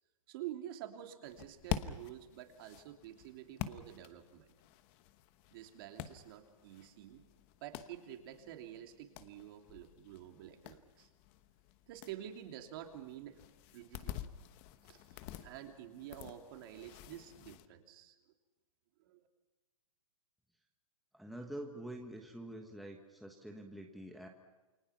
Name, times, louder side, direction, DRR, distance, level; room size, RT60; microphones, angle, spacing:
voice 1, 0.3-4.5 5.5-7.2 7.6-11.1 11.9-13.4 13.7-14.3 14.8-18.1 19.0-19.2, right 11 dB, 40° right, 4 dB, 3.0 m, -49 dB
sound 1, 1.2-17.7, left 12 dB, 30° left, 1.0 m, -48 dB
voice 2, 21.1-24.3, right 1 dB, ahead, 1 dB, 1.4 m, -46 dB
29.0 x 22.0 x 5.9 m, 1.2 s
hypercardioid pair, 160°, 18 cm